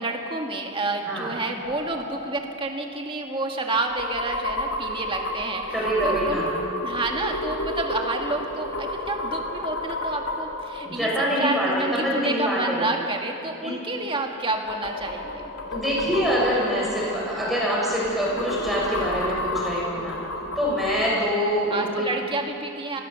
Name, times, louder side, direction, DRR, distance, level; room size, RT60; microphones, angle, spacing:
voice 1, 0.0-6.5 6.8-15.4 21.7-23.0, right 2 dB, 25° right, 2 dB, 1.9 m, -29 dB
sound 1, 1.6-12.2 14.2-21.1, left 1 dB, 90° left, 2.2 m, -32 dB
voice 2, 5.7-6.5 10.8-12.8 13.6-13.7 15.7-20.2 20.6-22.1, equal, ahead, -5 dB, 6.3 m, -25 dB
24.5 x 16.5 x 6.9 m, 2.7 s
head